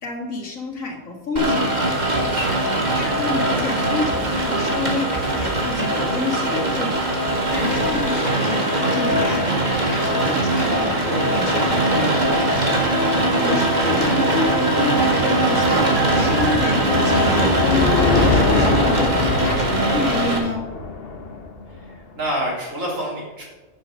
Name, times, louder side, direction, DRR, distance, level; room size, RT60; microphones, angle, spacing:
voice 1, 0.0-1.7 3.0-7.0 7.5-12.2 13.4-20.7, left 3 dB, 85° left, 2 dB, 2.4 m, -29 dB
Rain, 1.4-20.4, right 1 dB, 35° right, 2.1 m, -21 dB
voice 2, 2.3-2.6 22.1-23.4, equal, 80° right, -4 dB, 4.2 m, -27 dB
sound 1, 9.1-18.5 19.0-19.1, right 3 dB, 55° right, 1.4 m, -31 dB
sound 2, 14.7-21.8, left 3 dB, 50° left, 1.3 m, -23 dB
10.5 x 7.0 x 6.3 m, 1.2 s
omnidirectional pair, 1.4 m